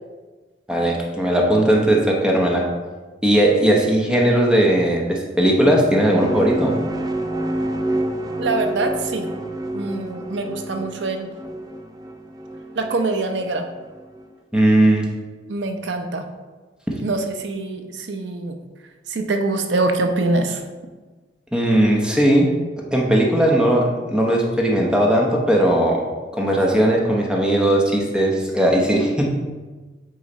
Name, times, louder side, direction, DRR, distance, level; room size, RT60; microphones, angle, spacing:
voice 1, 0.7-2.6 3.2-6.8 14.5-15.0 21.5-22.5 22.9-26.0 26.4-29.3, right 1 dB, 5° right, -1 dB, 0.8 m, -18 dB
sound 1, 5.6-14.3, right 1 dB, 20° right, 0.4 m, -28 dB
voice 2, 8.4-9.3 9.7-11.3 12.8-13.6 15.5-16.2 17.0-18.6 19.1-20.6, right 2 dB, 85° right, 5 dB, 0.6 m, -24 dB
8.4 x 3.2 x 4.0 m, 1.3 s
head